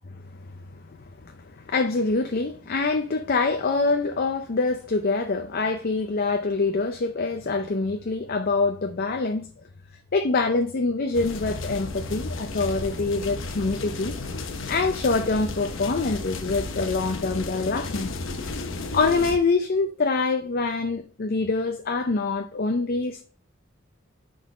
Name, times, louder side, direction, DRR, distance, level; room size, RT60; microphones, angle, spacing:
voice 1, 0.1-0.8 1.2-9.5 10.1-14.2 14.7-18.1 18.9-23.2, left 3 dB, 50° left, 0.6 m, -25 dB
sound 1, 11.1-19.4, left 3 dB, 70° left, 0.9 m, -33 dB
6.2 x 3.9 x 5.3 m
head